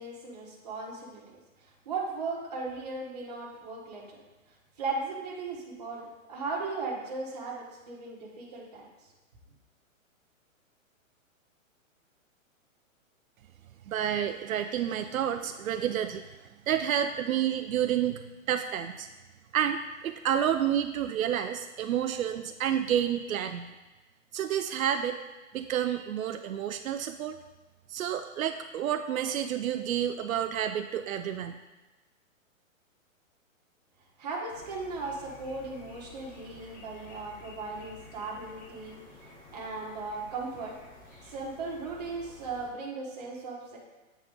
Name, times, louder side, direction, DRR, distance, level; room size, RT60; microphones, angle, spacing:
voice 1, 0.0-4.2 4.8-8.9 34.2-39.0 39.5-40.8 41.2-43.8, right 3 dB, 30° right, -3 dB, 1.2 m, -37 dB
voice 2, 13.9-16.3 16.7-18.2 18.5-19.1 19.5-23.7 24.3-25.2 25.5-27.4 27.9-31.6, right 10 dB, 80° right, 7 dB, 0.5 m, -29 dB
sound 1, 34.5-42.7, left 2 dB, 60° left, 2.4 m, -51 dB
8.1 x 4.2 x 3.7 m, 1.1 s
hypercardioid pair, 180°, 41 cm